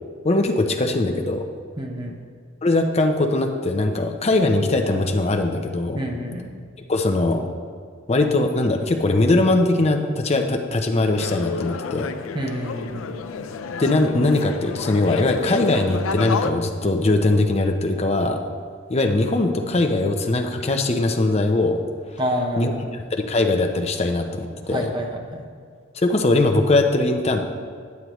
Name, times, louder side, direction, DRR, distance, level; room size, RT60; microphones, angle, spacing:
voice 1, 0.2-1.4 2.6-6.0 6.9-7.5 8.1-12.1 13.8-18.4 18.9-21.8 22.6-22.7 23.1-24.9 26.0-27.4, left 2 dB, 30° left, 4 dB, 0.6 m, -21 dB
voice 2, 1.8-2.2 5.9-6.5 12.3-13.1 22.2-22.9 24.7-25.4, equal, 20° right, 1 dB, 0.8 m, -28 dB
sound 1, 11.2-16.5, left 5 dB, 80° left, 0.4 m, -30 dB
9.4 x 8.3 x 3.1 m, 2.1 s
head